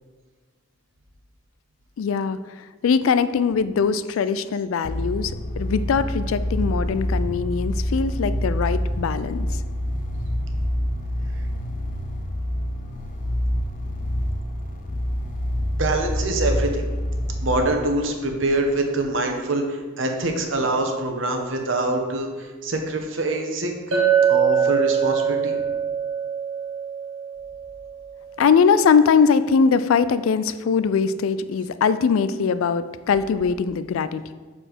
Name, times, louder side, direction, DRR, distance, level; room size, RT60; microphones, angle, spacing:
voice 1, 2.0-9.6 28.4-34.3, left 6 dB, 80° left, 14 dB, 0.3 m, -21 dB
sound 1, 4.8-17.6, equal, 40° left, 0.6 m, -26 dB
voice 2, 15.8-16.9 17.4-25.6, right 2 dB, 65° right, 3 dB, 0.9 m, -25 dB
Chink clink, 23.9-28.3, right 8 dB, 85° right, 1.8 m, -23 dB
6.8 x 4.3 x 4.5 m, 1.4 s
head